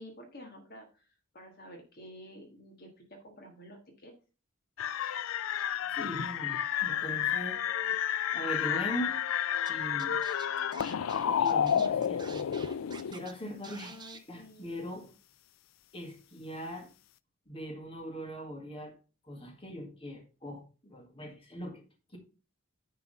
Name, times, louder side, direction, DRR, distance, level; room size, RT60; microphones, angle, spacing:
voice 1, 0.0-4.1 13.8-14.7, equal, 50° left, 1 dB, 1.5 m, -50 dB
sound 1, 4.8-13.1, left 9 dB, 75° left, 0.4 m, -31 dB
voice 2, 5.9-7.6 8.3-9.3 9.7-10.2 11.4-12.5 13.1-13.9 14.3-15.1 15.9-16.9 17.5-18.9 19.2-21.8, equal, 25° left, 3 dB, 1.9 m, -40 dB
Scratching (performance technique), 9.7-9.8 10.0-13.3 13.6-14.2, right 5 dB, 20° right, 0.7 m, -48 dB
9.7 x 3.8 x 5.4 m, 0.34 s
head